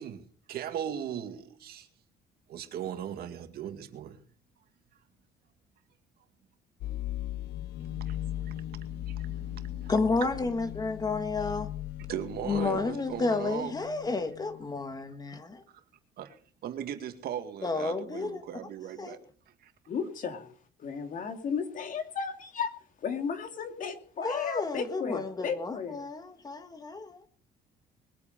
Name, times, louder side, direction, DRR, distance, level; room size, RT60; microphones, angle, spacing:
voice 1, 0.0-1.9 2.5-4.2 7.8-9.9 12.1-13.7 16.2-19.2 19.6-19.7, right 9 dB, 65° right, 2.1 m, -38 dB
sound 1, 6.8-14.7, left 13 dB, 80° left, 0.7 m, -38 dB
voice 2, 9.9-11.7 12.4-15.6 17.6-18.4 19.0-19.2 24.2-27.2, left 3 dB, 25° left, 1.6 m, -31 dB
voice 3, 19.9-20.5 20.8-22.7 23.0-26.1, left 6 dB, 50° left, 2.7 m, -34 dB
22.0 x 8.4 x 5.2 m
cardioid pair, 110°, 17 cm